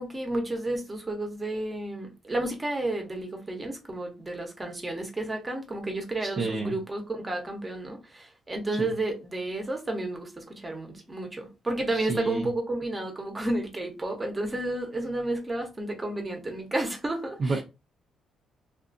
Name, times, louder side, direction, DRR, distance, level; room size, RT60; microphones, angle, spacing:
voice 1, 0.0-17.6, right 2 dB, 20° right, 0.9 m, -31 dB
voice 2, 6.2-6.8 8.8-8.9 11.9-12.5 17.4-17.6, right 3 dB, 45° right, 0.6 m, -30 dB
2.6 x 2.4 x 2.5 m
cardioid pair, 90°, 0 cm